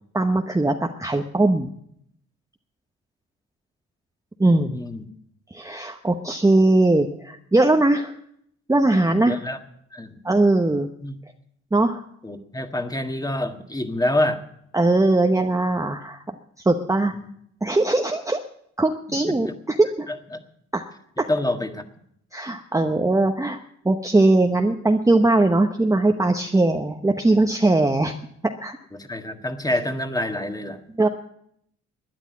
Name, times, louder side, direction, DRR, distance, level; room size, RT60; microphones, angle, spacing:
voice 1, 0.1-1.7 4.4-4.8 5.5-8.1 8.7-9.4 10.2-10.9 11.7-12.0 14.7-17.1 17.6-18.4 18.8-20.1 20.7-20.8 21.2-21.3 22.3-23.6 23.8-28.1 28.6-28.8 31.0-31.1, right 2 dB, 10° right, 4 dB, 0.9 m, -20 dB
voice 2, 4.7-5.0 9.3-9.6 9.9-10.2 11.0-11.2 12.2-14.4 17.1-17.3 19.1-19.5 20.1-20.4 21.3-21.8 28.9-30.8, left 1 dB, 10° left, 7 dB, 1.7 m, -27 dB
12.5 x 9.9 x 9.5 m, 0.71 s
cardioid pair, 90°, 30 cm